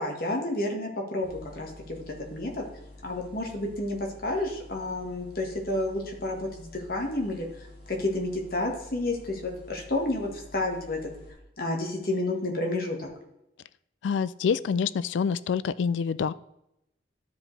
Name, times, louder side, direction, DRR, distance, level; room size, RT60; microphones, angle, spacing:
voice 1, 0.0-2.6 3.0-7.5 7.9-11.0 11.6-13.1, left 2 dB, 55° left, 1 dB, 1.6 m, -30 dB
sound 1, 1.2-11.3, left 1 dB, 30° left, 2.3 m, -49 dB
voice 2, 14.0-16.3, left 6 dB, 80° left, 17 dB, 0.3 m, -26 dB
12.5 x 5.0 x 3.3 m, 0.84 s
head